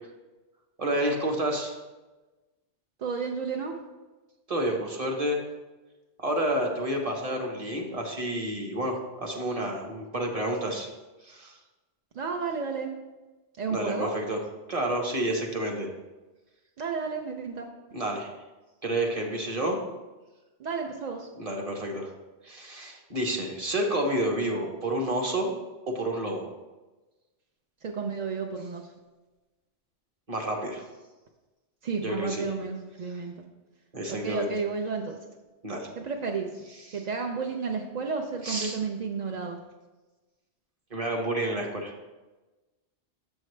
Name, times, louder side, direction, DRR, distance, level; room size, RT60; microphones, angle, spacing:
voice 1, 0.8-1.7 4.5-5.4 6.2-10.9 11.2-11.6 13.7-14.4 14.7-15.9 17.9-18.3 18.8-19.8 21.4-22.1 22.4-25.5 25.9-26.4 30.3-30.8 32.0-32.5 33.9-34.5 35.6-35.9 38.4-38.8 40.9-41.9, right 1 dB, 30° right, 1 dB, 1.0 m, -29 dB
voice 2, 3.0-3.8 12.1-12.9 13.6-14.1 16.8-17.7 20.6-21.3 27.8-28.9 31.8-33.4 34.1-35.1 36.0-36.5 36.9-39.6, right 5 dB, 55° right, 2 dB, 0.5 m, -32 dB
7.5 x 6.4 x 3.2 m, 1.2 s
omnidirectional pair, 1.2 m